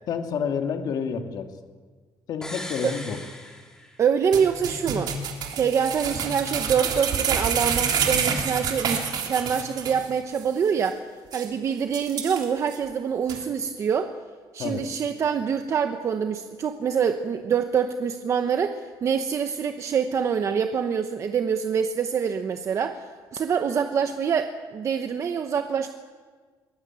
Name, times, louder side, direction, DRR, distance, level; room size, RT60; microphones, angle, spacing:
voice 1, 0.1-1.5 2.3-3.2 14.6-14.8, left 6 dB, 55° left, 5 dB, 2.4 m, -29 dB
sound 1, 2.4-4.3 4.6-4.7, left 1 dB, 10° left, 3.2 m, -39 dB
voice 2, 4.0-5.1 5.6-11.0 11.3-14.1 14.5-25.9, right 7 dB, 40° right, 7 dB, 1.0 m, -25 dB
sound 2, 4.3-10.1 10.3-10.4 10.9-11.0 11.3-11.5 11.9-12.8 13.3-13.4, right 7 dB, 60° right, 3.2 m, -27 dB
23.0 x 19.5 x 8.9 m, 1.5 s
cardioid pair, 170°, 8 cm